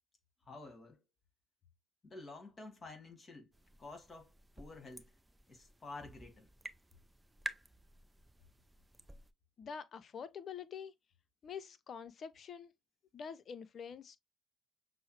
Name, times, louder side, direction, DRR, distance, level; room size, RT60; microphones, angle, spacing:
voice 1, 0.5-1.0 2.0-3.5 3.8-5.1 5.5-6.5, left 3 dB, 30° left, 1.8 m, -51 dB
sound 1, 3.5-9.3, right 1 dB, 15° right, 0.5 m, -50 dB
voice 2, 9.6-10.9 11.4-12.7 13.1-14.2, left 7 dB, 45° left, 0.6 m, -46 dB
6.2 x 2.1 x 3.1 m
hypercardioid pair, 55°, 0 cm